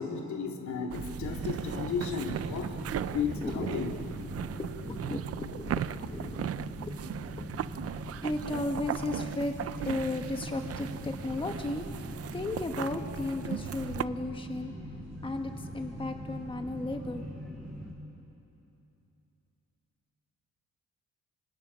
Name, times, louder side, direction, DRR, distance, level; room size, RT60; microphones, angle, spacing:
voice 1, 0.0-2.7 3.1-4.0, left 5 dB, 80° left, 2 dB, 2.8 m, -34 dB
sound 1, 0.9-17.9, equal, ahead, 7.1 m, -41 dB
sound 2, 0.9-14.1, right 11 dB, 55° right, 0.5 m, -38 dB
voice 2, 3.1-3.7 4.6-6.5 6.8-6.9 7.3-7.5 8.2-9.6 9.8-11.9 12.3-14.7 15.2-17.2, left 2 dB, 15° left, 4 dB, 1.3 m, -35 dB
28.0 x 25.0 x 6.3 m, 3.0 s
cardioid pair, 135°, 29 cm